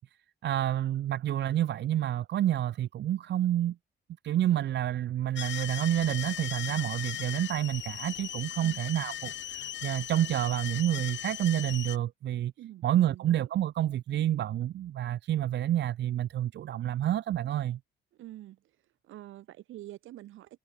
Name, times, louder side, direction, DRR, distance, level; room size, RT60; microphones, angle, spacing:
voice 1, 0.4-3.8 4.2-12.5 12.8-17.8, right 12 dB, 60° right, 0.7 m, -29 dB
sound 1, 5.4-12.0, left 11 dB, 65° left, 1.1 m, -38 dB
voice 2, 12.6-13.5 18.1-18.6 19.0-20.6, right 14 dB, 85° right, 7.6 m, -46 dB
cardioid pair, 90°, 20 cm